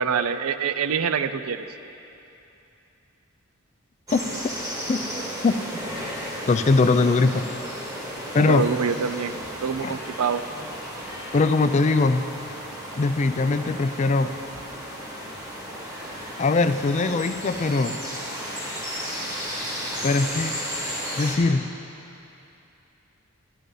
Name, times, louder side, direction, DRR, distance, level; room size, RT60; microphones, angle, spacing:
voice 1, 0.0-1.6 8.3-10.4, right 6 dB, 90° right, 11 dB, 0.5 m, -25 dB
sound 1, 4.1-21.4, equal, 15° right, 1.4 m, -34 dB
voice 2, 6.5-7.5 8.3-8.7 9.8-9.9 11.3-12.3 13.0-14.3 16.4-18.0 20.0-20.6 21.2-21.7, left 3 dB, 35° left, 10 dB, 0.3 m, -21 dB
12.5 x 8.9 x 5.4 m, 2.8 s
head